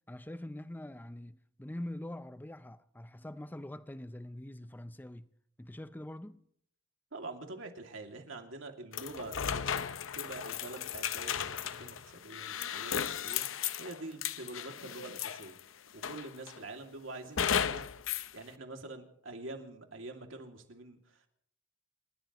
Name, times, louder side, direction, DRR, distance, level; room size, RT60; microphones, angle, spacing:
voice 1, 0.1-5.3 5.6-6.4, left 1 dB, 10° left, 0.6 m, -44 dB
voice 2, 7.1-9.8 10.1-13.5 13.8-15.6 15.9-17.8 18.3-21.3, right 2 dB, 75° right, 2.5 m, -46 dB
sound 1, 8.9-15.6 16.0-16.6 17.4-18.3, left 8 dB, 80° left, 0.7 m, -35 dB
29.0 x 16.0 x 3.0 m
head